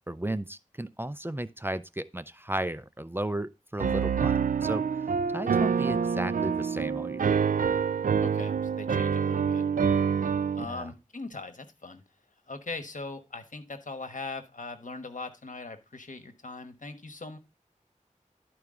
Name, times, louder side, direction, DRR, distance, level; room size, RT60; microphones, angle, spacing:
voice 1, 0.1-4.8 5.3-7.3 10.6-10.9, right 1 dB, 15° right, 0.5 m, -34 dB
Piano, 3.8-10.6, right 6 dB, 90° right, 0.4 m, -26 dB
voice 2, 8.2-9.6 10.5-12.0 12.5-17.4, left 3 dB, 70° left, 1.2 m, -40 dB
12.0 x 4.7 x 3.7 m
wide cardioid pair, 45°, 14 cm